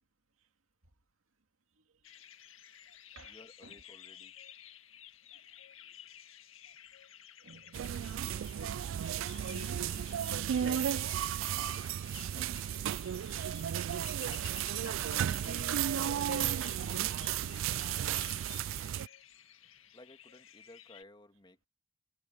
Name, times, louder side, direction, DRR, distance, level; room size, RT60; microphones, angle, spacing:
sound 1, 2.0-21.0, left 10 dB, 80° left, 1.9 m, -53 dB
voice 1, 3.3-4.3 12.3-13.0 19.9-21.7, left 1 dB, 25° left, 2.2 m, -57 dB
voice 2, 7.4-7.8 8.5-9.0 9.4-11.2 14.7-17.4, right 3 dB, 85° right, 2.3 m, -45 dB
sound 2, 7.7-19.1, right 10 dB, 65° right, 0.3 m, -34 dB
head